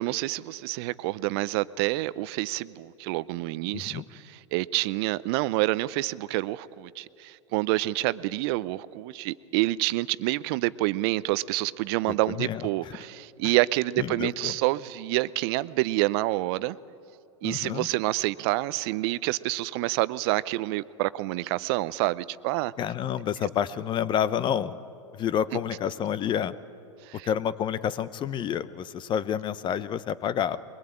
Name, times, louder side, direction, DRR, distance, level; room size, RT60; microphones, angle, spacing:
voice 1, 0.0-16.8 17.4-22.7 27.0-27.3, right 18 dB, 50° right, 18 dB, 0.6 m, -28 dB
voice 2, 3.7-4.0 12.3-12.9 14.0-14.5 17.4-17.9 22.8-24.8 25.1-26.5 27.2-30.6, left 9 dB, 30° left, 16 dB, 0.8 m, -29 dB
22.0 x 21.5 x 8.8 m, 2.7 s
hypercardioid pair, 105°, 16 cm